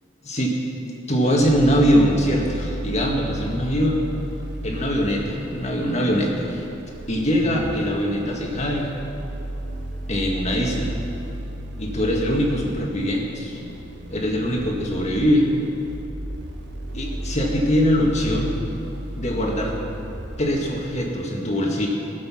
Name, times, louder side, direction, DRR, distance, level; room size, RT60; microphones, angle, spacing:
voice 1, 0.2-0.6 1.1-4.1 4.6-6.6 7.1-8.9 10.1-10.9 11.8-13.6 14.1-15.5 16.9-18.5 19.2-19.7 20.4-21.9, equal, 35° left, -1 dB, 2.0 m, -22 dB
sound 1, 1.4-21.1, right 1 dB, 65° right, 1.3 m, -34 dB
20.0 x 7.5 x 5.9 m, 2.7 s
head